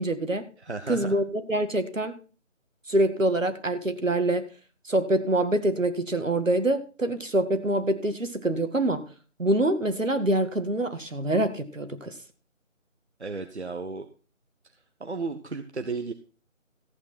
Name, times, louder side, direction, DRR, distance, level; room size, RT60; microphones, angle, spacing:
voice 1, 0.0-0.5 0.9-2.2 2.9-4.4 4.8-9.1 9.4-12.1, right 1 dB, 75° right, 9 dB, 2.0 m, -25 dB
voice 2, 0.6-1.2 13.2-14.1 15.0-16.1, right 4 dB, 55° right, 7 dB, 1.2 m, -34 dB
14.5 x 8.4 x 4.4 m, 0.36 s
figure-of-eight pair, 165°, 39 cm